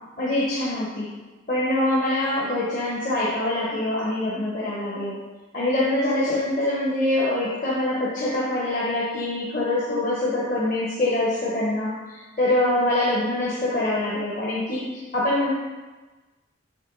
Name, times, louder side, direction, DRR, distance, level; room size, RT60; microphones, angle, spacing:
voice 1, 0.2-1.1 1.5-5.2 5.5-15.5, left 1 dB, 45° left, -6 dB, 0.9 m, -24 dB
7.3 x 3.4 x 3.9 m, 1.2 s
head